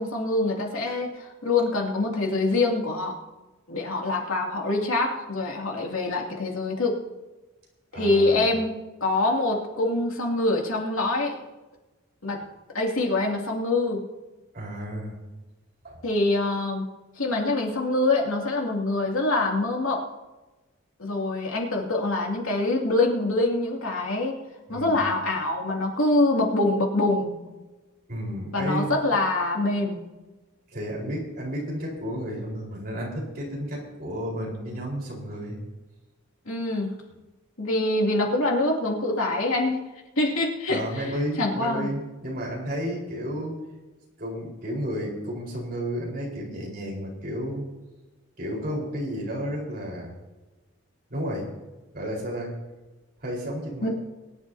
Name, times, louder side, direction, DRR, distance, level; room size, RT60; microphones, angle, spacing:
voice 1, 0.0-3.1 3.7-6.9 7.9-8.7 9.0-11.4 12.2-12.4 12.7-14.0 16.0-16.9 17.2-20.0 21.0-24.4 24.7-27.4 28.5-30.0 36.5-36.9 37.6-39.8 40.2-41.9 53.8-53.9, left 2 dB, 90° left, -1 dB, 2.6 m, -25 dB
voice 2, 7.9-8.5 14.5-15.2 15.8-16.0 24.7-25.0 28.1-29.0 30.7-35.6 40.7-43.6 44.2-47.6 48.4-50.1 51.1-51.5 51.9-52.5 53.2-53.9, equal, 45° right, -3 dB, 4.4 m, -32 dB
22.5 x 11.0 x 2.8 m, 1.1 s
head